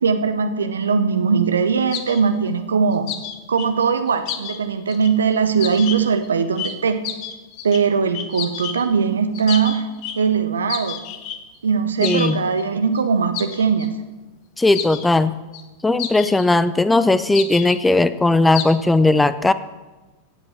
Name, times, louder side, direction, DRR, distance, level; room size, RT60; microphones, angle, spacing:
voice 1, 0.0-3.1 3.5-7.0 7.6-9.9 10.2-11.0 11.6-13.9, right 5 dB, 70° right, 9 dB, 1.2 m, -20 dB
sound 1, 1.9-2.2 2.9-4.6 4.9-5.1 5.6-6.3 6.6-6.7 7.0-7.8 8.1-8.8 9.3-10.2 10.7-11.4 12.0-12.3 12.6-12.7 13.0-13.1 13.3-13.9 14.7-15.0 15.5-15.6 16.0-16.5 17.3-17.8 18.5-18.6, left 9 dB, 40° left, 1.4 m, -30 dB
voice 2, 12.0-12.4 14.6-15.3 15.8-19.5, left 2 dB, 10° left, 14 dB, 0.6 m, -17 dB
16.0 x 8.7 x 7.4 m, 1.2 s
figure-of-eight pair, 90°, 0 cm